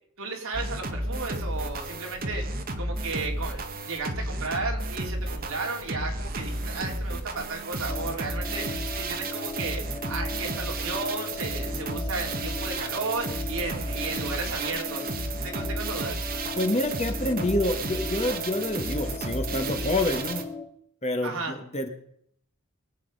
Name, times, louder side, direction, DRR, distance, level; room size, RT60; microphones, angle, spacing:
voice 1, 0.2-15.1 15.4-16.2 21.2-21.6, right 3 dB, 65° right, 1 dB, 3.4 m, -34 dB
sound 1, 0.5-20.4, right 2 dB, 40° right, 1.4 m, -32 dB
sound 2, 7.9-20.7, left 2 dB, 15° left, 1.2 m, -38 dB
voice 2, 16.5-20.4 21.0-21.9, left 1 dB, 30° left, 6 dB, 1.6 m, -27 dB
22.5 x 8.4 x 5.4 m, 0.69 s
head